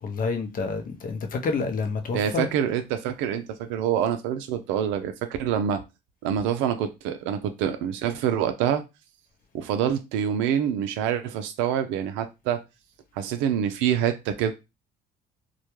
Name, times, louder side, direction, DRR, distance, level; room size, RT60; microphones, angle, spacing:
voice 1, 0.0-2.5, left 4 dB, 45° left, 0.6 m, -28 dB
voice 2, 2.1-5.8 6.2-8.8 9.5-12.6 13.1-14.5, right 9 dB, 85° right, 0.4 m, -26 dB
2.2 x 2.1 x 3.0 m
supercardioid pair, 70°, 19 cm